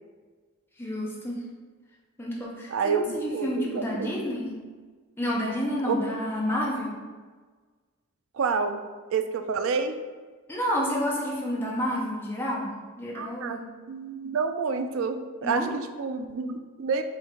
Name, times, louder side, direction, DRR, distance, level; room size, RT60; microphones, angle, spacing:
voice 1, 0.8-1.4 2.2-4.6 5.2-7.0 10.5-13.6 15.4-15.7, equal, 10° left, -4 dB, 0.7 m, -29 dB
voice 2, 2.7-4.3 5.9-6.0 8.3-8.9 9.1-10.0 13.1-17.0, right 5 dB, 60° right, 8 dB, 0.3 m, -29 dB
4.4 x 2.5 x 3.7 m, 1.4 s
head